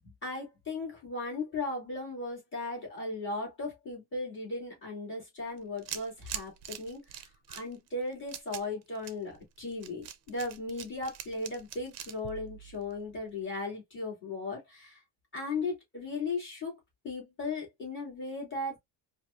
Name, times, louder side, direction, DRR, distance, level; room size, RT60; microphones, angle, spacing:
voice 1, 0.2-15.0 15.3-18.8, left 3 dB, 25° left, 2.5 m, -37 dB
sound 1, 5.5-13.3, right 10 dB, 35° right, 0.5 m, -44 dB
4.5 x 2.6 x 2.5 m
cardioid pair, 170°, 46 cm